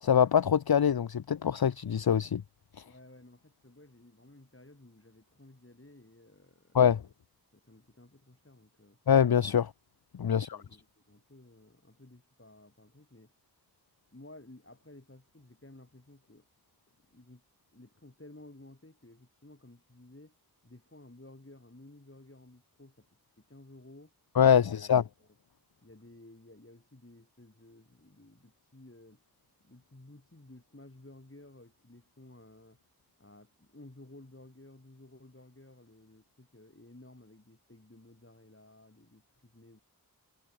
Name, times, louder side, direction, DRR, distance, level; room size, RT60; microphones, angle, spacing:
voice 1, 0.0-2.4 6.7-7.0 9.1-9.7 10.2-10.6 24.4-25.0, left 8 dB, 70° left, 0.6 m, -24 dB
voice 2, 2.9-6.8 7.5-9.0 10.3-13.3 14.1-16.4 17.0-17.4 17.7-20.3 20.6-23.1 23.5-24.1 24.5-24.9 25.2-25.3 25.8-29.2 29.6-32.8 33.2-39.8, left 1 dB, 35° left, 7.2 m, -55 dB
wide cardioid pair, 50°, 38 cm